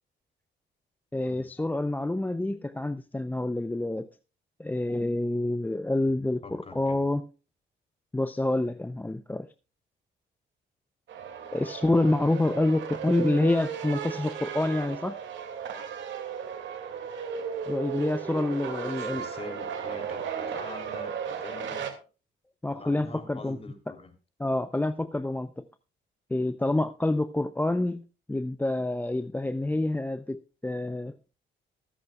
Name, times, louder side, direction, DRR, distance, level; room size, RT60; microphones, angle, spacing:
voice 1, 1.1-4.1 4.6-7.3 8.1-9.5 11.5-15.2 17.7-19.2 22.6-23.6 24.4-25.7 26.3-31.1, left 2 dB, 10° left, 11 dB, 0.5 m, -27 dB
voice 2, 6.4-7.0 18.7-21.9 22.7-24.1, left 3 dB, 30° left, 6 dB, 3.2 m, -44 dB
sound 1, 11.1-21.9, right 7 dB, 70° right, 2.3 m, -35 dB
23.5 x 8.2 x 2.3 m, 0.33 s
cardioid pair, 90°, 20 cm